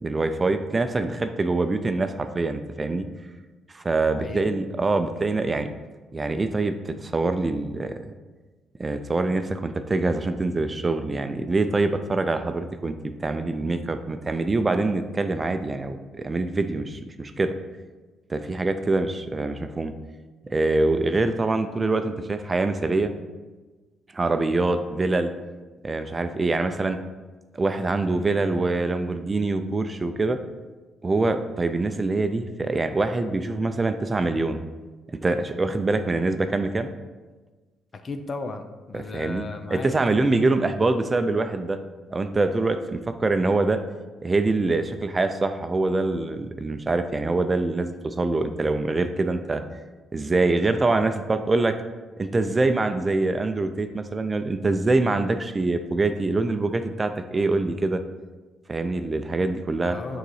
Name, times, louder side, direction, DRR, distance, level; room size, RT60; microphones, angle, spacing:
voice 1, 0.0-3.1 3.7-5.7 6.1-7.9 8.8-17.5 18.3-19.9 20.4-23.1 24.1-25.3 25.8-27.0 27.6-30.4 31.0-34.6 35.2-36.9 38.9-41.8 42.1-43.8 44.2-49.6 50.1-51.7 52.2-58.0 58.7-60.0, right 3 dB, 25° right, 8 dB, 0.4 m, -24 dB
voice 2, 4.1-4.5 38.0-39.9 40.2-40.3 59.8-60.2, left 3 dB, 40° left, 7 dB, 0.6 m, -35 dB
6.7 x 3.9 x 4.7 m, 1.3 s
cardioid pair, 90°, 0 cm